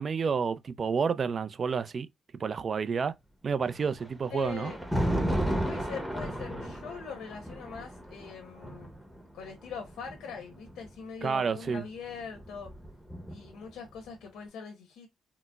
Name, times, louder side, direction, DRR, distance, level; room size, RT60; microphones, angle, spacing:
voice 1, 0.0-2.1 2.4-3.1 3.4-4.7 11.2-11.8, right 6 dB, 45° right, 0.4 m, -29 dB
Thunder, 3.7-10.9 11.9-13.7, equal, ahead, 0.8 m, -34 dB
voice 2, 4.3-4.8 5.6-8.9 9.3-12.7 13.3-15.1, left 6 dB, 85° left, 0.8 m, -42 dB
3.9 x 2.0 x 2.3 m
cardioid pair, 90°, 0 cm